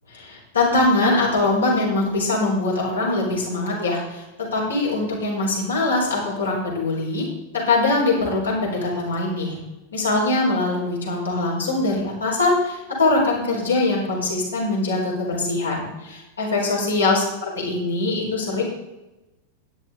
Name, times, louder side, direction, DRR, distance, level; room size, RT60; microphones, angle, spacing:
voice 1, 0.1-4.2 4.5-7.3 7.5-9.6 9.9-17.2 17.6-18.6, left 2 dB, 75° left, -3 dB, 4.5 m, -22 dB
13.0 x 10.0 x 3.8 m, 1.0 s
figure-of-eight pair, 90°, 0 cm